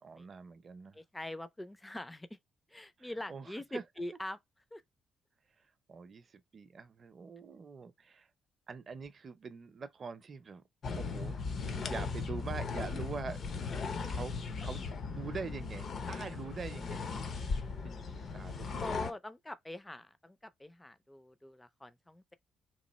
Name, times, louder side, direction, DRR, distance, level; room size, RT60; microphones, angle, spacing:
voice 1, 0.0-1.0 3.0-3.8 5.9-8.3 8.7-10.6 11.0-13.4 14.1-14.8 15.1-17.1 17.8-18.9, right 5 dB, 45° right, 0.5 m, -44 dB
voice 2, 0.9-2.4 2.7-4.4 4.7-4.8 18.8-22.3, left 1 dB, 10° left, 0.4 m, -44 dB
sound 1, 10.8-19.1, left 4 dB, 50° left, 0.7 m, -37 dB
3.1 x 2.5 x 4.0 m
cardioid pair, 90°, 0 cm